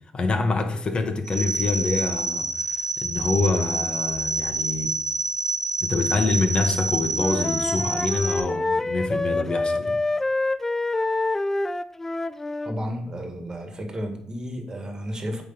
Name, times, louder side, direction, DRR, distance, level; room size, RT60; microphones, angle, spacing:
voice 1, 0.1-4.9 5.8-10.0, left 3 dB, 40° left, 6 dB, 1.2 m, -26 dB
sound 1, 1.3-8.4, right 3 dB, 10° right, 1.2 m, -27 dB
Wind instrument woodwind instrument, 7.1-12.8, left 2 dB, 15° left, 0.3 m, -26 dB
voice 2, 12.7-15.4, equal, 30° right, 4 dB, 1.7 m, -32 dB
8.4 x 3.5 x 5.7 m, 0.67 s
supercardioid pair, 75°, 3 cm